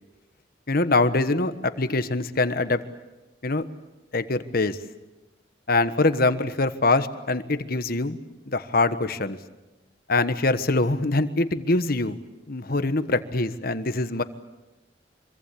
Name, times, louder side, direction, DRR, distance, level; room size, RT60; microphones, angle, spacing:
voice 1, 0.7-2.8 3.4-3.6 4.1-4.8 5.7-8.2 8.5-9.4 10.1-12.2 12.5-14.2, left 2 dB, 55° left, 11 dB, 1.4 m, -23 dB
26.0 x 23.5 x 8.6 m, 1.1 s
head